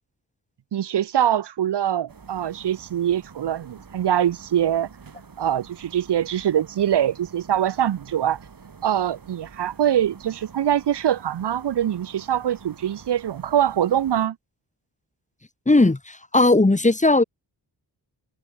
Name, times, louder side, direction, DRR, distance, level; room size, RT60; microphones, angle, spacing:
voice 1, 0.7-4.9 5.4-8.4 8.8-14.4, right 10 dB, 75° right, 0.8 m, -23 dB
sound 1, 2.1-14.3, right 5 dB, 55° right, 5.7 m, -47 dB
voice 2, 15.7-17.2, left 2 dB, 20° left, 1.8 m, -17 dB
open air
wide cardioid pair, 125°, 41 cm